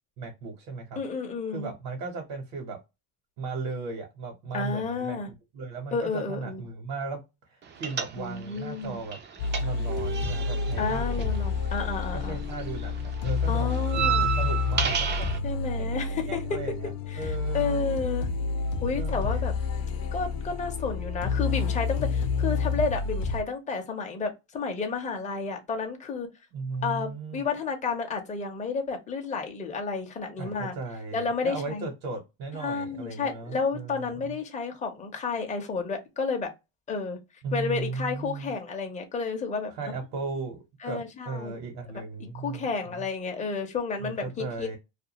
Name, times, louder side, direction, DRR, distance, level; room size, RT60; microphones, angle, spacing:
voice 1, 0.2-1.0 1.5-2.8 3.4-5.2 5.5-7.2 7.5-9.2 9.6-11.3 12.1-15.3 15.8-15.9 16.3-16.9 17.2-17.8 18.9-19.4 26.5-27.4 30.4-34.3 37.4-38.5 39.7-43.0 44.0-44.8, right 4 dB, 80° right, 1.2 m, -36 dB
voice 2, 1.0-1.7 4.5-5.3 5.9-6.6 8.2-9.0 10.8-12.4 13.5-14.3 15.4-16.4 17.1-18.3 18.8-19.5 20.1-26.3 26.8-30.7 31.1-31.9 32.5-36.5 36.9-37.2 37.5-39.7 40.8-41.6 42.3-44.8, left 5 dB, 15° left, 0.6 m, -31 dB
sound 1, 7.8-8.6 8.8-12.2 12.5-15.4, right 8 dB, 30° right, 0.3 m, -31 dB
sound 2, 9.4-23.4, left 4 dB, 55° left, 0.7 m, -29 dB
2.5 x 2.3 x 2.8 m
cardioid pair, 130°, 42 cm